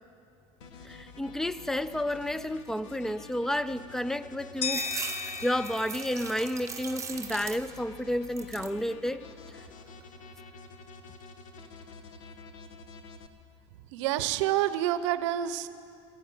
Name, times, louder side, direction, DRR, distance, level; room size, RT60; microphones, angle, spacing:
sound 1, 0.6-13.3, left 4 dB, 90° left, 1.2 m, -49 dB
voice 1, 0.8-4.9 5.2-9.2 9.5-9.6, left 1 dB, 5° left, 15 dB, 0.3 m, -31 dB
sound 2, 4.6-7.5, left 6 dB, 40° left, 0.8 m, -37 dB
sound 3, 4.6-7.9 8.2-8.8 9.3-10.0, right 6 dB, 20° right, 0.7 m, -40 dB
voice 2, 13.9-15.7, right 12 dB, 80° right, 13 dB, 0.7 m, -28 dB
16.0 x 15.5 x 5.5 m, 2.5 s
supercardioid pair, 130°, 15 cm